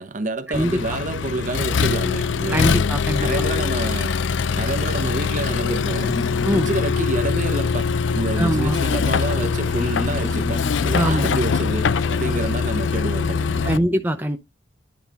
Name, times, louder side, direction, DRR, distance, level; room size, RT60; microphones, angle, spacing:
voice 1, 0.0-2.8 3.2-4.1 4.6-6.2 6.5-13.8, right 2 dB, 40° right, 0.9 m, -28 dB
Accelerating revving vroom, 0.5-13.8, left 5 dB, 70° left, 0.5 m, -22 dB
voice 2, 2.5-3.4 6.4-6.7 8.4-8.8 10.9-11.4 13.6-14.4, right 1 dB, 10° right, 0.6 m, -22 dB
sound 1, 5.8-13.6, left 1 dB, 35° left, 1.1 m, -36 dB
10.5 x 3.6 x 4.0 m
head